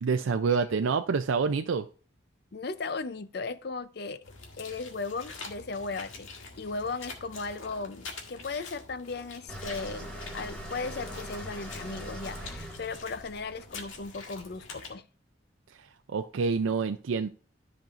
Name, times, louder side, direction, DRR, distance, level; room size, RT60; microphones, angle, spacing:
voice 1, 0.0-1.9 16.1-17.3, right 5 dB, 80° right, 7 dB, 0.4 m, -27 dB
voice 2, 2.5-4.2 4.6-15.0, left 4 dB, 55° left, 13 dB, 0.5 m, -37 dB
sound 1, 4.2-14.9, left 4 dB, 80° left, 1.8 m, -46 dB
sound 2, 9.5-14.4, equal, 5° left, 1.9 m, -42 dB
13.5 x 5.3 x 2.5 m, 0.39 s
head